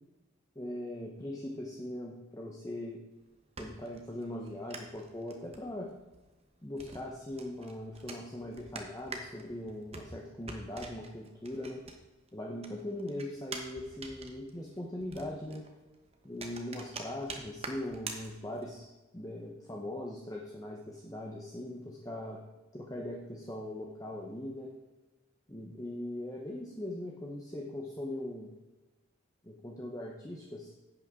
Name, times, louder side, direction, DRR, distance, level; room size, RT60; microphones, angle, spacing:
voice 1, 0.6-3.0 3.6-5.9 6.6-11.8 12.3-15.7 16.2-22.4 22.7-24.7 25.5-28.5 29.4-30.7, left 1 dB, 15° left, -1 dB, 0.9 m, -40 dB
sound 1, 3.1-12.3 12.6-18.8, right 3 dB, 30° right, 1.0 m, -46 dB
10.5 x 8.3 x 3.7 m, 1.1 s
head